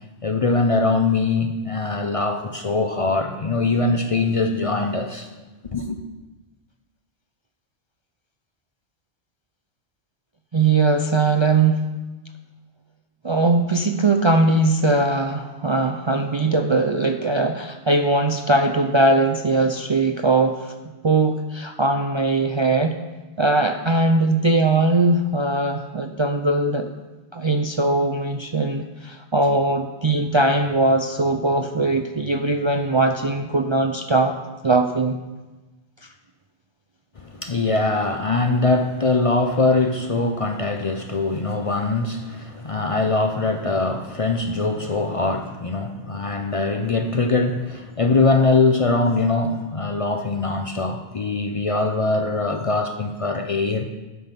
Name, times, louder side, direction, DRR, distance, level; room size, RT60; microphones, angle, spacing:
voice 1, 0.2-5.3 5.6-6.0 37.2-53.8, left 3 dB, 40° left, 0.6 m, -22 dB
voice 2, 10.5-11.8 13.2-20.7 21.0-23.0 23.4-26.9 27.3-34.4 34.6-35.2, right 2 dB, 40° right, 0.4 m, -20 dB
13.0 x 6.0 x 5.2 m
omnidirectional pair, 1.1 m